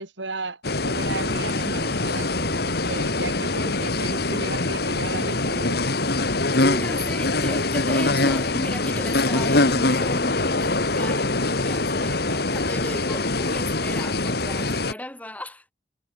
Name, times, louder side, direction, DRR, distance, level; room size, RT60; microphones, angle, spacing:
voice 1, 0.0-5.8, right 3 dB, 90° right, 6.9 m, -35 dB
sound 1, 0.6-14.9, left 2 dB, 60° left, 2.7 m, -24 dB
voice 2, 6.6-15.7, left 1 dB, 10° left, 4.0 m, -35 dB
head